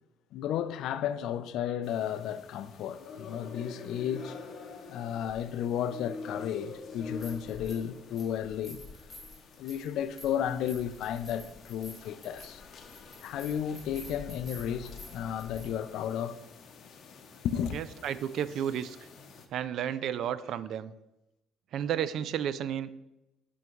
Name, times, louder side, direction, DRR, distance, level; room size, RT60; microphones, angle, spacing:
voice 1, 0.3-4.3 4.9-8.8 9.6-12.6 13.2-16.4 17.4-17.8, left 9 dB, 75° left, 0.3 m, -33 dB
sound 1, 1.8-19.5, left 4 dB, 50° left, 0.7 m, -47 dB
sound 2, 7.1-7.9 8.2-15.7, left 3 dB, 15° left, 1.8 m, -48 dB
voice 2, 17.7-19.0 19.5-20.9 21.7-22.9, right 9 dB, 65° right, 0.3 m, -32 dB
6.2 x 3.5 x 4.6 m
cardioid pair, 115°, 0 cm